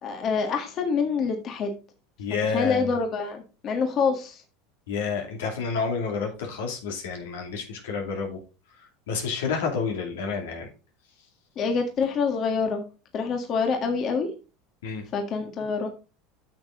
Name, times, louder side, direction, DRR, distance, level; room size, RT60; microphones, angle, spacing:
voice 1, 0.0-1.7 2.5-4.4 11.6-12.8 13.1-14.3 15.1-15.9, left 5 dB, 45° left, 4 dB, 1.7 m, -26 dB
voice 2, 2.2-2.9 4.9-8.4 9.1-10.7 14.8-15.1, left 5 dB, 80° left, 2 dB, 2.5 m, -29 dB
8.6 x 6.4 x 3.8 m, 0.32 s
hypercardioid pair, 90°, 0 cm